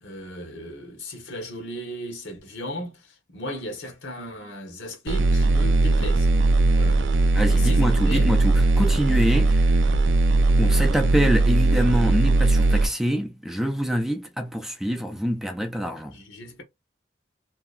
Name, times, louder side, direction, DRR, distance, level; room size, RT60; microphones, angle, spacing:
voice 1, 0.0-6.3 6.8-7.0 7.4-8.3 10.6-10.8 16.1-16.6, equal, 85° left, 1.1 m, -36 dB
sound 1, 5.1-12.9, right 2 dB, 70° right, 0.4 m, -19 dB
voice 2, 7.3-9.7 10.6-16.2, equal, ahead, 0.4 m, -25 dB
2.8 x 2.2 x 2.5 m
head